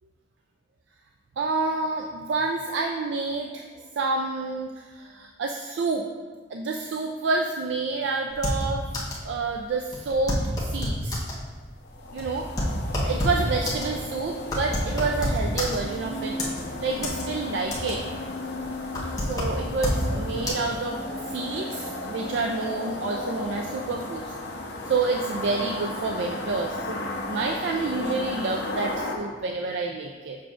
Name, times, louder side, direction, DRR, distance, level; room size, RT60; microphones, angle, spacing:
voice 1, 1.4-3.6 4.0-6.0 6.5-8.8 9.2-11.2 12.1-12.5 13.0-16.4 16.8-18.0 19.2-24.3 24.9-30.4, right 3 dB, 80° right, 3 dB, 0.4 m, -28 dB
sound 1, 8.3-9.3 9.5-9.6 9.9-11.4 12.0-16.0 16.4-17.3 17.5-18.1 18.5-20.1 20.5-20.6, left 1 dB, 20° left, 1.1 m, -28 dB
sound 2, 11.8-29.1, left 2 dB, 65° left, 0.8 m, -34 dB
7.1 x 5.8 x 2.4 m, 1.5 s
head